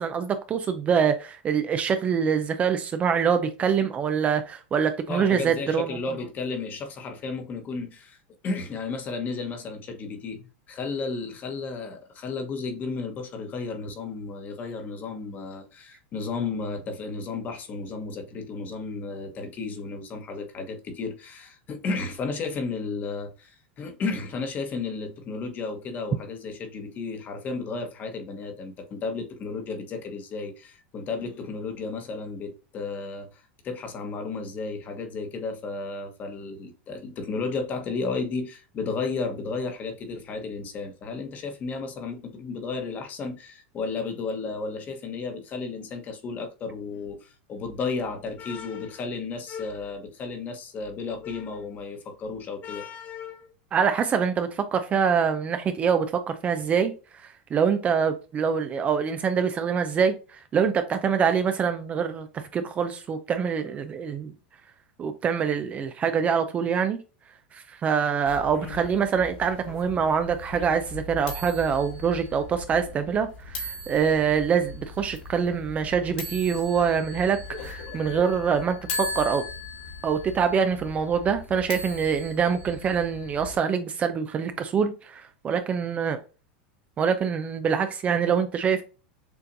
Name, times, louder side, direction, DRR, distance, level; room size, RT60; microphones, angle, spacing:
voice 1, 0.0-6.0 53.7-56.9 57.5-64.3 65.0-67.0 67.5-79.4 80.0-86.2 87.0-88.8, right 7 dB, 25° right, 0.5 m, -25 dB
voice 2, 5.1-8.2 8.4-53.5, left 4 dB, 30° left, 1.1 m, -33 dB
sound 1, 68.3-83.6, left 2 dB, 75° left, 2.0 m, -38 dB
6.9 x 2.5 x 2.6 m
supercardioid pair, 140°, 6 cm